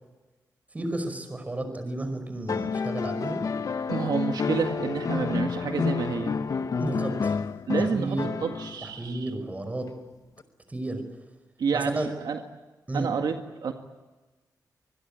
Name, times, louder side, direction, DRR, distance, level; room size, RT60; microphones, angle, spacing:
voice 1, 0.7-3.4 6.8-7.4 7.8-8.4 8.8-9.9 10.7-11.0 11.7-12.1 12.9-13.1, right 2 dB, 20° right, 8 dB, 5.3 m, -32 dB
sound 1, 2.5-8.9 10.4-10.5, left 5 dB, 55° left, 1.0 m, -29 dB
voice 2, 3.9-6.3 7.7-9.3 11.6-12.4 12.9-13.4 13.6-13.7, right 6 dB, 80° right, 5 dB, 1.9 m, -29 dB
26.0 x 21.5 x 9.0 m, 1.2 s
wide cardioid pair, 120°, 7 cm